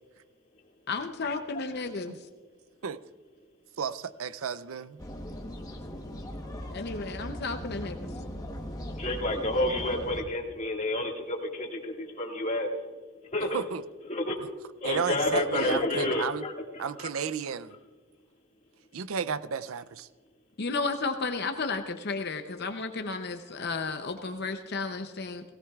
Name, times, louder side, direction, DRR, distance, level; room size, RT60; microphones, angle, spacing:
voice 1, 0.9-2.1 6.7-8.0 20.6-25.4, left 4 dB, 50° left, 6 dB, 0.7 m, -33 dB
voice 2, 3.8-5.0 13.5-13.8 14.8-16.4 16.8-17.8 18.9-20.1, right 6 dB, 80° right, 15 dB, 0.5 m, -33 dB
sound 1, 5.0-10.2, equal, 15° left, 1.1 m, -39 dB
voice 3, 9.0-12.7 13.3-13.6 14.1-14.4 14.8-17.1, left 2 dB, 35° left, 0 dB, 2.0 m, -30 dB
18.0 x 17.0 x 2.4 m, 1.4 s
head